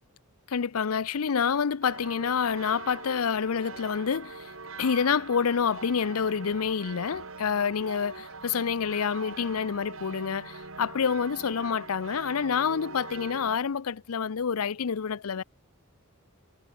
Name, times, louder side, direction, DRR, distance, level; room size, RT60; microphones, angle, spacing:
voice 1, 0.5-4.5 4.8-15.4, left 6 dB, 80° left, 0.6 m, -28 dB
sound 1, 1.8-13.6, right 4 dB, 65° right, 2.7 m, -43 dB
head